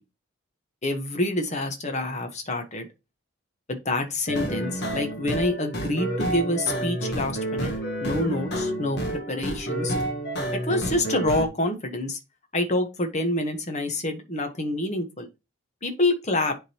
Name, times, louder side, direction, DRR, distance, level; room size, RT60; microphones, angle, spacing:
voice 1, 0.8-2.9 3.7-7.7 8.0-9.9 10.5-12.2 12.5-15.3 15.8-16.5, left 1 dB, 35° left, 1.2 m, -27 dB
sound 1, 4.3-11.5, right 1 dB, 55° left, 1.4 m, -29 dB
9.9 x 3.7 x 2.9 m
head